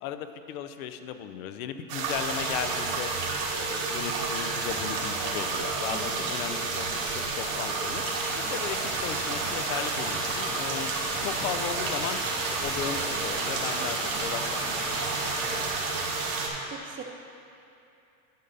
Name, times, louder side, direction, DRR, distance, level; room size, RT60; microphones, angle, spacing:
voice 1, 0.0-3.1 3.5-8.0 8.4-10.9 11.2-12.2 12.6-14.9 15.6-16.0, left 9 dB, 75° left, 9 dB, 0.6 m, -36 dB
sound 1, 1.9-16.5, right 4 dB, 70° right, 1.5 m, -30 dB
voice 2, 5.9-6.3 8.4-8.7 13.8-14.5 16.7-17.0, right 6 dB, 30° right, 3 dB, 0.8 m, -43 dB
sound 2, 8.0-15.6, equal, 5° left, 0.6 m, -38 dB
10.0 x 5.3 x 4.0 m, 2.7 s
supercardioid pair, 130°, 42 cm